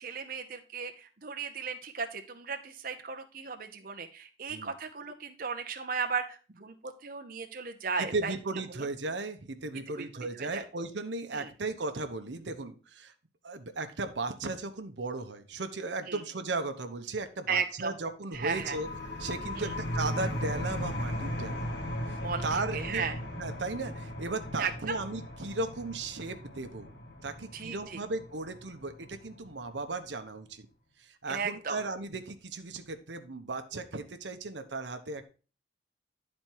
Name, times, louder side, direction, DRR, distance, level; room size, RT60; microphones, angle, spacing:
voice 1, 0.0-8.3 8.8-8.9 10.0-10.1 10.3-10.6 11.3-11.5 16.0-16.2 17.5-17.9 18.3-18.8 19.5-19.7 22.2-23.2 24.6-25.0 27.5-28.0 31.3-31.8, right 5 dB, 50° right, 6 dB, 0.8 m, -35 dB
voice 2, 8.0-13.1 13.4-18.9 19.2-21.6 22.1-23.1 23.3-26.9 27.2-30.7 31.0-35.2, right 3 dB, 85° right, 8 dB, 0.9 m, -36 dB
sound 1, 18.3-29.7, left 1 dB, 75° left, 1.8 m, -37 dB
10.5 x 4.4 x 4.5 m, 0.35 s
head